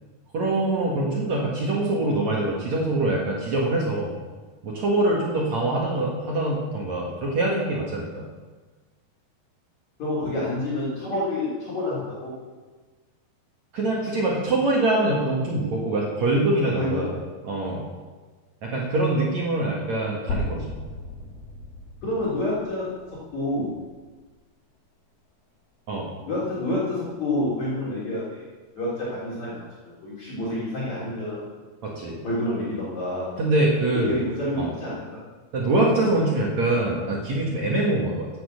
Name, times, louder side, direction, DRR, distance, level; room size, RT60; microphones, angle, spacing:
voice 1, 0.3-4.1 4.6-8.2 13.7-17.2 17.4-17.8 18.6-20.7 25.9-26.1 31.8-32.2 33.4-34.2 34.6-34.7 35.5-38.3, right 2 dB, 50° right, -3 dB, 2.7 m, -24 dB
voice 2, 10.0-12.3 16.8-17.1 22.0-22.9 23.3-23.7 26.3-28.5 28.8-29.6 30.0-31.4 32.2-33.3 34.0-35.0, left 1 dB, 45° left, -8 dB, 4.6 m, -28 dB
sound 1, 20.3-24.2, left 2 dB, 70° left, 3.8 m, -36 dB
16.0 x 8.9 x 6.6 m, 1.3 s
omnidirectional pair, 4.8 m